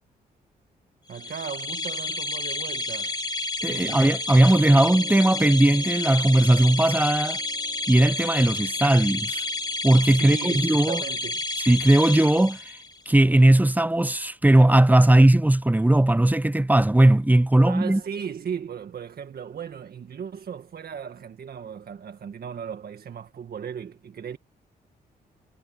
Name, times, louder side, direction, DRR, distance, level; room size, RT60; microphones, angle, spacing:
sound 1, 1.1-13.0, left 2 dB, 25° left, 2.0 m, -30 dB
voice 1, 1.1-3.2 3.7-4.2 4.5-4.8 10.1-11.4 17.6-24.4, right 7 dB, 60° right, 1.7 m, -36 dB
voice 2, 3.6-7.4 7.9-9.4 9.8-11.0 11.7-12.6 13.1-18.0, right 1 dB, 10° right, 0.9 m, -18 dB
Piano, 3.6-10.7, right 4 dB, 40° right, 5.4 m, -47 dB
cardioid pair, 65°, 17 cm